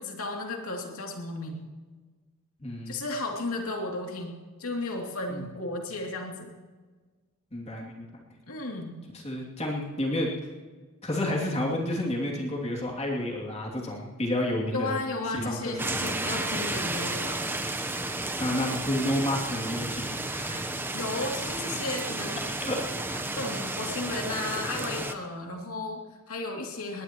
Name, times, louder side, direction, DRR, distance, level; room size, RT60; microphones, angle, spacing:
voice 1, 0.0-1.6 2.9-6.5 8.5-9.0 14.7-17.5 20.9-22.4 23.3-27.0, left 2 dB, 75° left, 0 dB, 2.8 m, -34 dB
voice 2, 2.6-3.0 5.3-5.4 7.5-8.0 9.1-10.5 11.0-15.0 15.3-16.0 18.4-20.7 22.6-22.8 23.1-23.3, left 1 dB, 30° left, -2 dB, 2.7 m, -30 dB
sound 1, 15.8-25.1, right 2 dB, 10° right, 0.8 m, -32 dB
20.5 x 20.0 x 3.0 m, 1.4 s
head